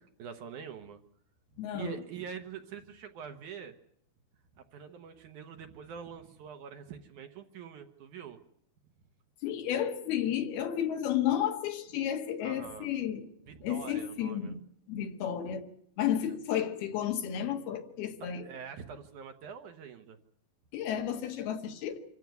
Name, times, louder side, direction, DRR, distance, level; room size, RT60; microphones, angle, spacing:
voice 1, 0.2-1.0 1.7-3.7 4.6-8.4 12.4-12.9 13.5-14.5 16.2-16.4 18.2-20.2, right 7 dB, 65° right, 2.3 m, -45 dB
voice 2, 1.6-2.0 9.4-13.2 13.6-14.6 14.9-15.7 16.0-18.5 20.7-22.0, left 10 dB, 85° left, 3.6 m, -32 dB
25.5 x 14.5 x 9.4 m
omnidirectional pair, 4.3 m